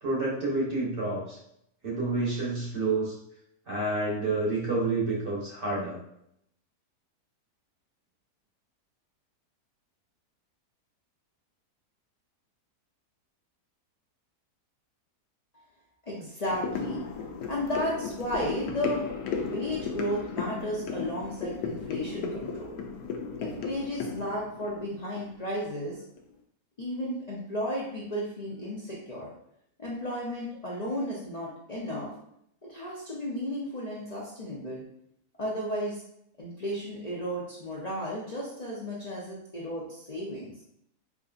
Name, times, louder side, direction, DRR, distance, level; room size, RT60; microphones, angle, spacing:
voice 1, 0.0-1.4 1.8-3.1 3.7-6.0, right 2 dB, 40° right, -5 dB, 1.0 m, -29 dB
voice 2, 16.1-17.0 17.5-19.0 19.4-22.7 23.4-26.0 26.8-29.3 29.8-32.1 32.7-34.8 35.4-36.0 36.4-40.5, equal, 50° left, -6 dB, 0.4 m, -33 dB
sound 1, 16.5-25.8 26.2-26.3, left 5 dB, 85° left, 1.2 m, -35 dB
4.8 x 2.6 x 2.4 m, 0.74 s
omnidirectional pair, 1.7 m